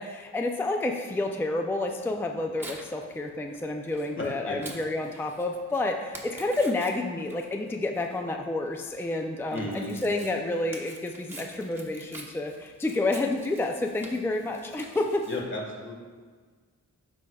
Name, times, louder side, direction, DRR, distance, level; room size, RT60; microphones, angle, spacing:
voice 1, 0.0-15.3, left 2 dB, 10° left, 3 dB, 0.4 m, -29 dB
Tearing, 1.9-15.4, right 1 dB, 10° right, 1.1 m, -47 dB
voice 2, 4.2-4.6 9.5-9.9 15.3-15.9, left 2 dB, 40° left, -2 dB, 1.6 m, -34 dB
12.5 x 4.9 x 2.3 m, 1.5 s
wide cardioid pair, 130°, 30 cm